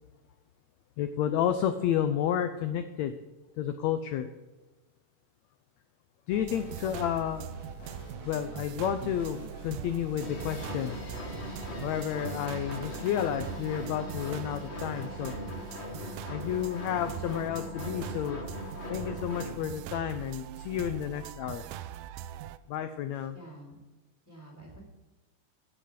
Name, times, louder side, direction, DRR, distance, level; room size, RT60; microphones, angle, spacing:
voice 1, 1.0-3.1 3.6-4.3 6.3-7.5 8.2-11.0 11.8-15.3 16.3-18.4 18.9-21.6 22.7-23.4, left 10 dB, 80° left, 9 dB, 1.6 m, -31 dB
sound 1, 6.3-22.6, right 12 dB, 80° right, 2.0 m, -42 dB
sound 2, 6.5-11.8, left 1 dB, 50° left, 3.4 m, -48 dB
sound 3, 10.2-19.7, left 2 dB, 30° left, 1.2 m, -40 dB
voice 2, 23.3-23.8 24.2-24.8, right 1 dB, 5° right, -2 dB, 3.3 m, -49 dB
15.5 x 6.5 x 7.6 m, 1.2 s
omnidirectional pair, 3.9 m